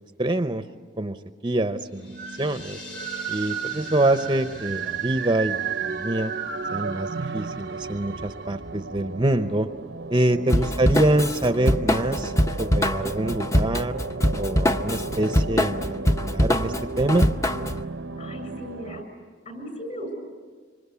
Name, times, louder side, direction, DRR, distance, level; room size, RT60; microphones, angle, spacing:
voice 1, 0.2-0.6 1.0-1.2 1.4-2.1 2.4-2.8 3.3-6.3 6.7-9.7 10.1-12.3 12.6-14.0 14.4-15.8 16.2-17.3, right 1 dB, 25° right, 9 dB, 0.7 m, -25 dB
sound 1, 1.9-7.5, left 2 dB, 65° left, 5.3 m, -46 dB
sound 2, 1.9-19.0, right 5 dB, 70° right, 0.7 m, -34 dB
voice 2, 10.3-10.9 18.2-19.0 19.5-20.2, equal, 45° left, 6 dB, 7.1 m, -37 dB
Drum kit / Drum, 10.5-17.8, left 1 dB, 15° left, 0.7 m, -23 dB
25.5 x 25.5 x 8.3 m, 1.5 s
head